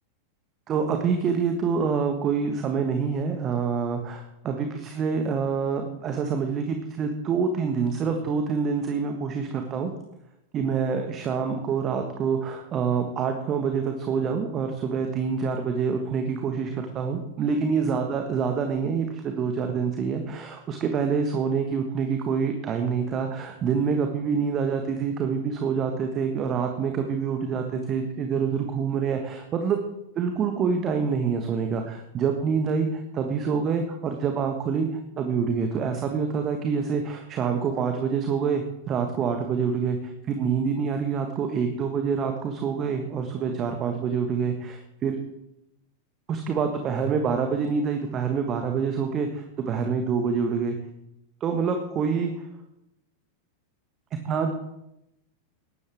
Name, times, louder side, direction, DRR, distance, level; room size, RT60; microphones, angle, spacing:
voice 1, 0.7-9.9 10.5-29.8 30.1-45.2 46.3-50.8 51.4-52.5 54.2-54.5, right 6 dB, 30° right, 5 dB, 1.5 m, -26 dB
18.5 x 12.5 x 3.6 m, 0.86 s
figure-of-eight pair, 90°, 0 cm